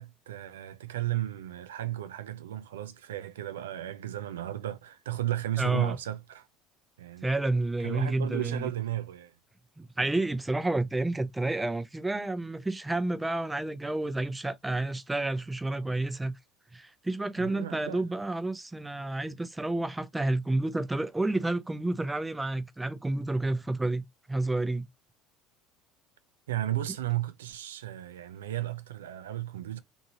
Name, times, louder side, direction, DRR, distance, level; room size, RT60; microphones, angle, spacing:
voice 1, 0.0-6.5 7.0-7.3 7.8-9.3 17.4-18.0 26.5-29.8, right 13 dB, 90° right, 0.4 m, -34 dB
voice 2, 5.6-6.0 7.2-8.7 9.8-16.4 16.7-24.9, right 2 dB, 10° right, 0.5 m, -30 dB
2.7 x 2.5 x 2.8 m
hypercardioid pair, 75°, 0 cm